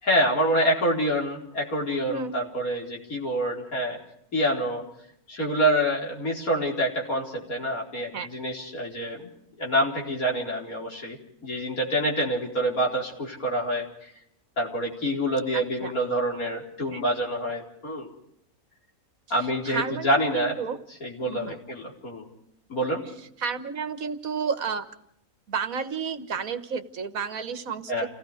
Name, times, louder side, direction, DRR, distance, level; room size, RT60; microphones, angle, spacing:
voice 1, 0.0-4.0 4.3-4.8 5.3-9.3 9.6-14.1 14.6-18.1 19.3-20.6 21.0-22.2 22.7-23.1 27.9-28.1, equal, 70° left, -2 dB, 4.8 m, -27 dB
voice 2, 15.5-15.9 16.9-17.0 19.6-20.8 21.2-21.6 23.4-24.8 25.5-28.1, right 6 dB, 70° right, 9 dB, 1.7 m, -31 dB
29.5 x 17.5 x 5.0 m, 0.72 s
omnidirectional pair, 1.5 m